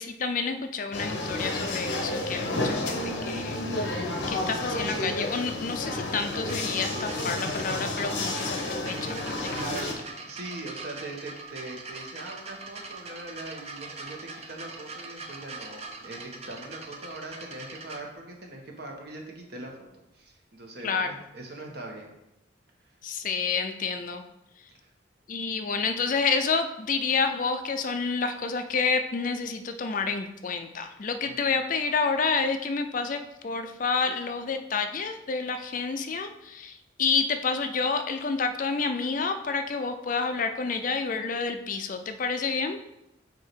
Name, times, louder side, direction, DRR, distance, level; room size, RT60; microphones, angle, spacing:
voice 1, 0.0-9.6 20.8-21.1 23.0-24.2 25.3-42.8, left 4 dB, 45° left, 7 dB, 0.4 m, -29 dB
sound 1, 0.9-9.9, left 2 dB, 65° left, 0.9 m, -31 dB
sound 2, 6.3-18.0 18.9-19.0, right 3 dB, 35° right, 0.6 m, -42 dB
voice 2, 9.5-19.8 20.1-22.1 24.7-24.9 31.2-31.5, right 2 dB, 55° right, 0 dB, 1.2 m, -41 dB
8.0 x 2.8 x 4.5 m, 0.89 s
head